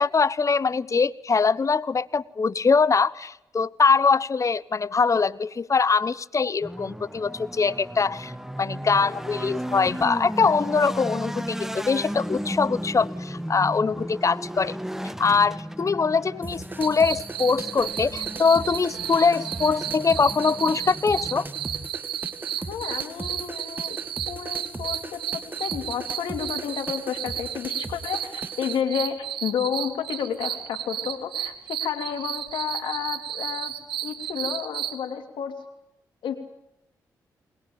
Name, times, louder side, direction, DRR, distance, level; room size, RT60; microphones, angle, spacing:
voice 1, 0.0-8.3 8.6-14.7 15.0-21.5, left 5 dB, 40° left, 20 dB, 0.8 m, -23 dB
sound 1, 6.6-21.9, equal, 5° right, 1.4 m, -35 dB
sound 2, 16.4-28.8, right 2 dB, 25° right, 2.0 m, -39 dB
sound 3, 16.8-35.0, right 11 dB, 80° right, 1.2 m, -33 dB
voice 2, 22.6-24.0 24.3-33.7 34.0-35.6 36.2-36.4, left 8 dB, 80° left, 6 dB, 2.8 m, -31 dB
21.5 x 21.0 x 8.8 m, 0.86 s
supercardioid pair, 45°, 8 cm